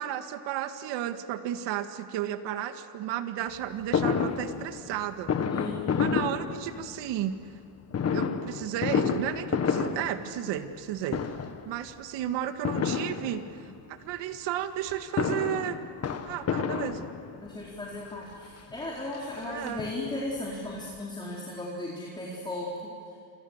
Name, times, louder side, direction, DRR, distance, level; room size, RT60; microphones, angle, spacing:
voice 1, 0.0-5.3 6.0-7.4 8.1-11.2 11.7-13.6 13.9-15.8 16.1-17.1 19.4-19.8, right 11 dB, 70° right, 8 dB, 2.0 m, -33 dB
Fireworks, 3.9-7.1 7.9-10.8 11.1-11.7 12.6-13.7 14.9-17.5 18.3-18.4 18.7-18.8 19.1-20.4 20.7-20.8 21.0-21.1, left 6 dB, 35° left, 1.7 m, -30 dB
voice 2, 5.5-6.1 17.4-23.2, left 1 dB, 10° left, -4 dB, 4.2 m, -36 dB
28.5 x 25.0 x 8.1 m, 2.4 s
cardioid pair, 130°, 45 cm